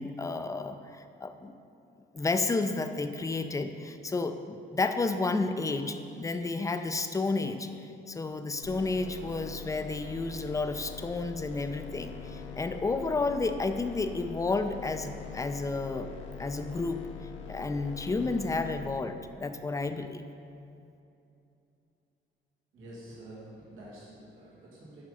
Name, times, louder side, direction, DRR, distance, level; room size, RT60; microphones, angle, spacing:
voice 1, 0.0-1.5 2.1-16.1 16.4-17.0 17.5-20.2, left 3 dB, 15° left, 8 dB, 0.5 m, -31 dB
sound 1, 8.6-19.0, left 6 dB, 75° left, 0.9 m, -43 dB
voice 2, 22.7-25.0, right 1 dB, 85° right, -6 dB, 2.0 m, -48 dB
7.7 x 5.2 x 5.4 m, 2.7 s
cardioid pair, 90°, 20 cm